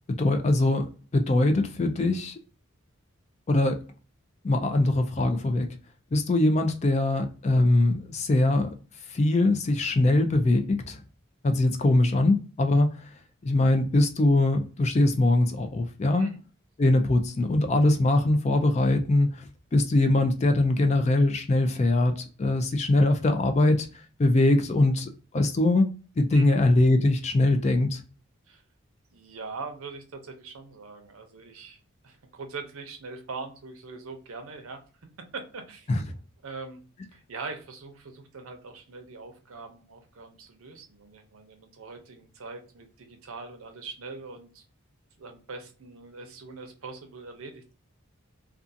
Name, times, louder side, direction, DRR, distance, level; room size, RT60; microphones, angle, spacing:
voice 1, 0.1-2.3 3.5-3.8 4.4-5.7 6.1-8.7 9.1-11.0 11.4-12.9 13.4-16.3 16.8-19.4 19.7-22.1 22.4-23.9 24.2-28.0 35.9-36.0, left 2 dB, 30° left, 0.3 m, -22 dB
voice 2, 29.1-34.8 35.3-35.9 36.4-44.7 45.2-47.7, right 4 dB, 85° right, 0.6 m, -42 dB
2.4 x 2.3 x 2.6 m
head